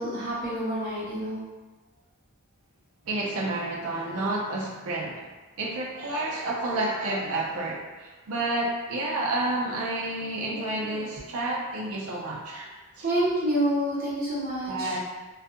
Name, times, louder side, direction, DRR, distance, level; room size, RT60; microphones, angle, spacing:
voice 1, 0.0-1.4 13.0-14.9, right 1 dB, 45° right, -8 dB, 0.8 m, -27 dB
voice 2, 3.1-5.3 5.6-12.7 13.0-13.1 14.7-15.0, right 2 dB, 85° right, -3 dB, 0.5 m, -30 dB
2.6 x 2.3 x 2.4 m, 1.2 s
head